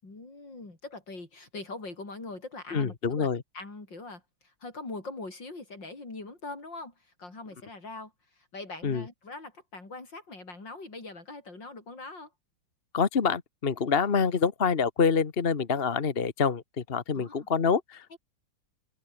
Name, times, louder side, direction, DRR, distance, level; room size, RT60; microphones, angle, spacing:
voice 1, 0.0-3.3 3.5-12.3 17.1-17.5 18.1-18.2, left 3 dB, 70° left, 6.5 m, -42 dB
voice 2, 2.7-3.4 8.8-9.0 12.9-16.6 16.9-18.2, left 5 dB, 35° left, 1.3 m, -26 dB
omnidirectional pair, 2.0 m